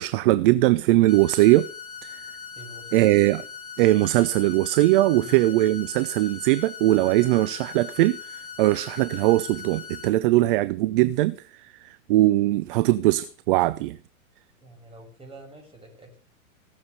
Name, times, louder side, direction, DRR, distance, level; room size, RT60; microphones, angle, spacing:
voice 1, 0.0-1.7 2.0-2.2 2.9-3.4 3.8-11.4 11.8-14.0, right 17 dB, 40° right, 0.7 m, -20 dB
sound 1, 1.1-10.1, left 6 dB, 20° left, 6.0 m, -40 dB
voice 2, 2.5-3.2 5.2-5.4 14.6-16.2, right 2 dB, 15° right, 6.8 m, -46 dB
18.0 x 7.4 x 6.7 m
hypercardioid pair, 110°, 42 cm